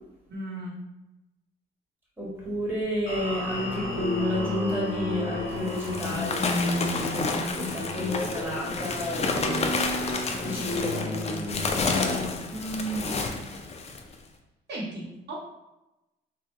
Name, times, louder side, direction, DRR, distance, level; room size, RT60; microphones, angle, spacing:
voice 1, 0.3-0.8 12.5-13.7 14.7-15.4, right 2 dB, 60° right, -6 dB, 0.9 m, -35 dB
voice 2, 2.2-9.7 10.4-12.3, left 1 dB, 10° right, -5 dB, 1.3 m, -31 dB
sound 1, 3.1-10.2, equal, 50° left, 1.2 m, -40 dB
sound 2, 3.5-12.3, left 2 dB, 80° left, 0.7 m, -33 dB
sound 3, 4.8-4.9 5.5-14.2, left 4 dB, 35° left, 0.4 m, -30 dB
3.3 x 2.1 x 2.9 m, 0.98 s
cardioid pair, 90°, 20 cm